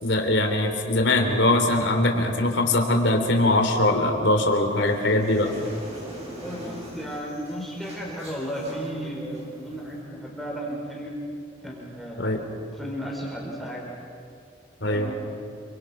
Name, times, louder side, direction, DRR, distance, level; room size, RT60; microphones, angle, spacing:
voice 1, 0.0-5.5 12.2-12.4 14.8-15.1, left 1 dB, 75° left, 4 dB, 3.4 m, -22 dB
sound 1, 4.7-10.0, equal, 35° right, 7.3 m, -42 dB
voice 2, 6.4-11.1 11.6-13.9 14.9-15.1, equal, ahead, -3 dB, 4.9 m, -34 dB
28.0 x 27.0 x 5.9 m, 2.5 s
head